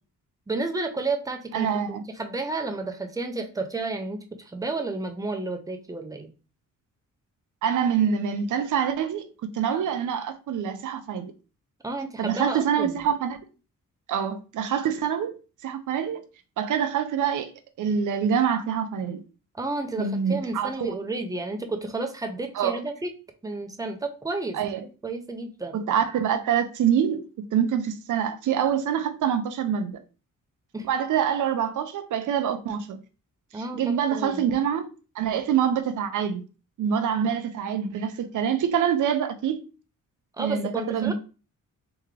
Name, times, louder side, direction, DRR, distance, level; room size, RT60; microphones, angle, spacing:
voice 1, 0.5-6.3 11.8-13.0 19.5-23.1 23.4-24.6 24.8-25.8 30.7-30.9 33.5-34.4 40.4-41.1, right 3 dB, 10° right, 0.5 m, -31 dB
voice 2, 1.5-2.0 7.6-11.3 12.2-13.4 14.1-15.3 15.6-16.2 16.6-17.5 17.8-19.2 20.0-20.9 22.5-22.8 24.5-24.8 25.7-30.0 30.9-33.0 33.5-34.9 35.2-36.4 36.8-39.6 40.4-41.1, right 8 dB, 65° right, 0.6 m, -25 dB
3.6 x 3.5 x 3.2 m
wide cardioid pair, 150°, 33 cm